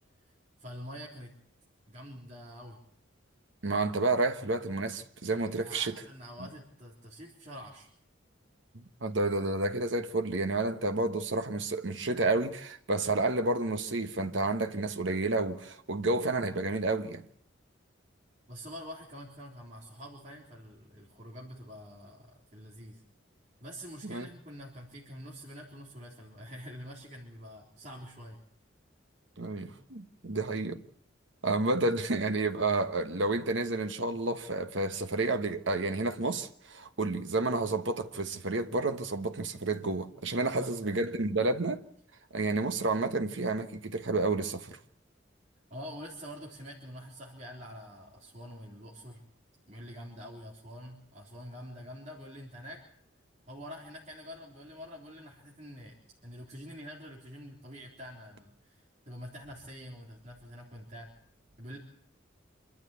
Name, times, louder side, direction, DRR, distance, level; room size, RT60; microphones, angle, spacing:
voice 1, 0.6-1.3 1.9-2.8 5.6-7.9 18.5-23.0 23.6-28.4 40.3-41.0 45.7-49.2 49.7-52.8 53.5-56.0 56.2-61.1 61.6-61.8, equal, 35° right, 3.7 m, -46 dB
voice 2, 3.6-6.0 8.7-17.2 24.0-24.3 29.4-30.8 31.4-41.8 42.3-44.8, right 2 dB, 75° right, 1.3 m, -30 dB
26.5 x 12.5 x 8.4 m
head